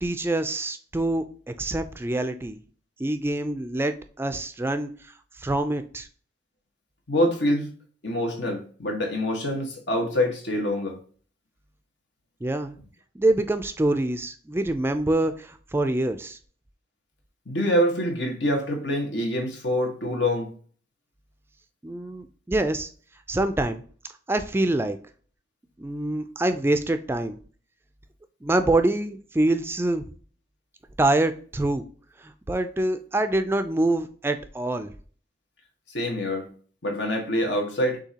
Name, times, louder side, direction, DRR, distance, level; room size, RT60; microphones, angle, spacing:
voice 1, 0.0-1.3 1.6-2.6 3.0-6.1 12.4-12.7 13.2-16.4 21.8-22.9 23.3-23.8 24.3-25.0 25.8-27.4 28.4-30.1 31.0-31.8 32.2-34.9, right 2 dB, 15° right, 0.3 m, -25 dB
voice 2, 7.1-7.7 8.0-11.0 17.4-20.5 35.9-36.5 36.8-38.0, left 1 dB, 85° left, 1.4 m, -25 dB
6.6 x 2.7 x 2.8 m
head